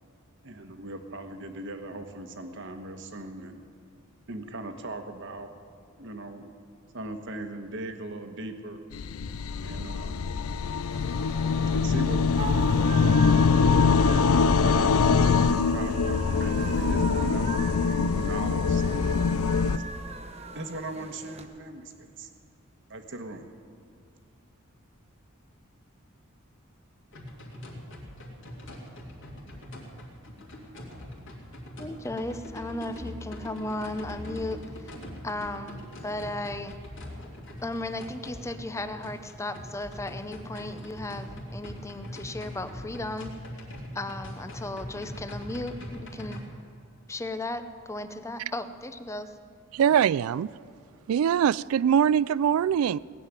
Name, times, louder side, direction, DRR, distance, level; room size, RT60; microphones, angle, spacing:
voice 1, 0.4-3.6 4.3-5.5 6.0-6.5 6.9-8.8 9.6-10.3 11.6-15.0 15.5-17.6 18.2-19.0 19.4-20.0 20.5-22.3 22.9-23.5, right 2 dB, 60° right, 1.3 m, -39 dB
sound 1, 8.9-19.8, left 5 dB, 75° left, 0.5 m, -23 dB
sound 2, 10.9-21.4, right 3 dB, 30° right, 1.0 m, -40 dB
sound 3, 27.1-46.4, left 1 dB, 60° left, 2.7 m, -42 dB
voice 2, 31.8-35.0 35.2-36.8 37.6-43.3 43.9-46.4 47.1-49.3, left 2 dB, 15° left, 0.6 m, -35 dB
voice 3, 49.7-50.5 51.1-53.0, right 8 dB, 75° right, 0.3 m, -22 dB
18.5 x 7.6 x 9.7 m
head